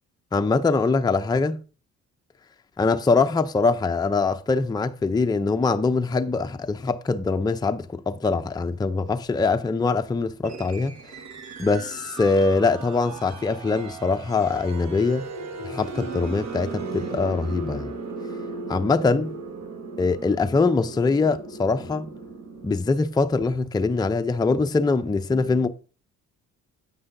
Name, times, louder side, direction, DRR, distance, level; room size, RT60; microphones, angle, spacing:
voice 1, 0.3-1.6 2.8-11.0 11.6-15.3 15.6-17.9 18.7-19.3 20.0-22.1 22.6-25.7, left 4 dB, 15° left, 0.5 m, -23 dB
sound 1, 10.4-22.7, right 3 dB, 65° right, 1.6 m, -37 dB
9.5 x 8.9 x 2.6 m
cardioid pair, 90°, 30 cm